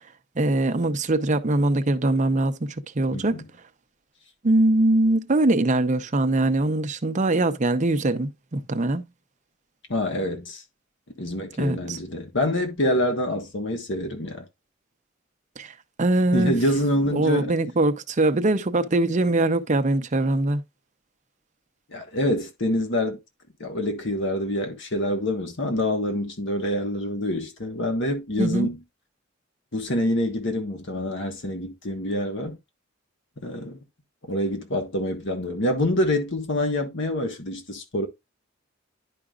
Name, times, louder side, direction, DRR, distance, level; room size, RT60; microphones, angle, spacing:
voice 1, 0.4-3.4 4.4-9.1 11.6-12.0 15.6-16.6 17.1-20.6 28.4-28.7, right 2 dB, 40° right, 0.7 m, -22 dB
voice 2, 3.1-3.4 9.9-10.6 11.2-14.4 16.3-17.5 21.9-23.2 23.6-28.8 29.7-32.6 33.4-33.8 34.3-38.1, left 1 dB, 65° left, 1.4 m, -26 dB
11.0 x 4.9 x 2.4 m
head